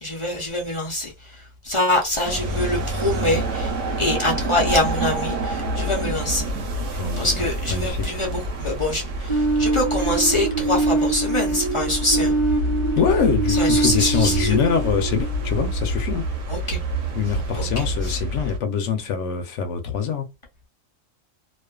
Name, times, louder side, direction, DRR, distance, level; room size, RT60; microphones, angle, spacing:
voice 1, 0.0-3.7 4.0-6.5 7.2-12.3 13.5-14.6 16.5-16.8 17.5-18.2, left 1 dB, 35° left, 0.5 m, -25 dB
sound 1, 2.2-18.6, right 1 dB, 70° right, 1.0 m, -27 dB
voice 2, 6.9-7.4 7.7-8.0 13.0-16.2 17.2-20.3, left 7 dB, 70° left, 0.9 m, -24 dB
sound 2, 9.3-16.0, right 3 dB, 35° right, 0.9 m, -24 dB
2.4 x 2.4 x 2.2 m
omnidirectional pair, 1.4 m